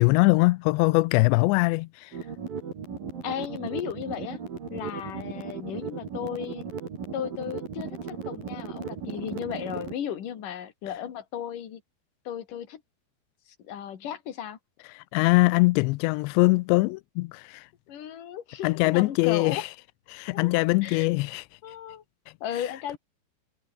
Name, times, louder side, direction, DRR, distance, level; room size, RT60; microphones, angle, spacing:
voice 1, 0.0-2.1 14.9-17.7 18.6-19.7 20.1-21.4, left 23 dB, 90° left, 2.8 m, -22 dB
sound 1, 2.1-9.9, right 6 dB, 55° right, 6.2 m, -36 dB
voice 2, 3.2-4.4 4.7-6.7 7.1-11.8 12.3-12.8 13.6-14.6 17.9-19.6 20.3-21.1 21.6-22.0 22.4-23.0, left 9 dB, 55° left, 3.7 m, -35 dB
omnidirectional pair, 5.0 m